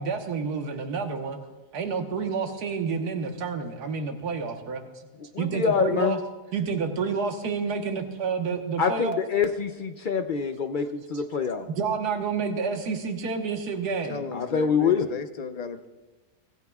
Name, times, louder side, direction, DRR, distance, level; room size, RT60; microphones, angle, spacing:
voice 1, 0.0-1.4 1.7-4.9 5.4-6.2 6.5-9.2 11.7-14.2, right 5 dB, 75° right, 4 dB, 1.8 m, -29 dB
voice 2, 5.3-6.2 8.8-11.7 14.3-15.1, left 6 dB, 75° left, 6 dB, 0.4 m, -25 dB
voice 3, 14.0-15.9, left 5 dB, 35° left, 8 dB, 0.7 m, -35 dB
25.0 x 17.5 x 2.4 m, 1.2 s
omnidirectional pair, 1.7 m